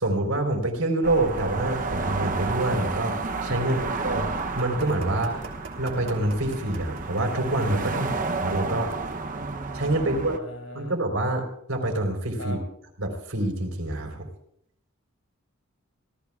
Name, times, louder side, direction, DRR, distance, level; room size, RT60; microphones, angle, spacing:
voice 1, 0.0-4.3 4.6-5.4 5.8-8.9 9.7-10.4 10.7-12.6 13.0-14.3, right 1 dB, 80° right, 3 dB, 4.0 m, -26 dB
sound 1, 1.0-10.4, right 3 dB, 40° right, 0.8 m, -31 dB
voice 2, 3.6-4.0 5.1-5.5 7.9-8.2 10.0-11.0 12.4-12.6, equal, 85° left, 2 dB, 5.3 m, -41 dB
sound 2, 4.1-9.2, right 4 dB, 65° right, 3.0 m, -44 dB
27.5 x 17.5 x 2.4 m, 0.73 s
head